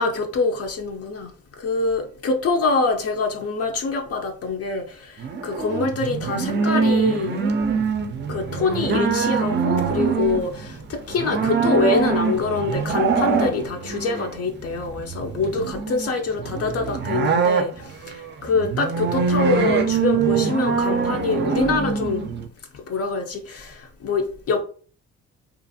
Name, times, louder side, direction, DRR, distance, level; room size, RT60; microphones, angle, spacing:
voice 1, 0.0-1.3 1.6-7.4 8.3-22.3 22.9-24.6, left 3 dB, 50° left, 0.5 m, -25 dB
sound 1, 5.2-22.5, right 5 dB, 35° right, 0.4 m, -24 dB
2.5 x 2.4 x 2.6 m
cardioid pair, 90°, 30 cm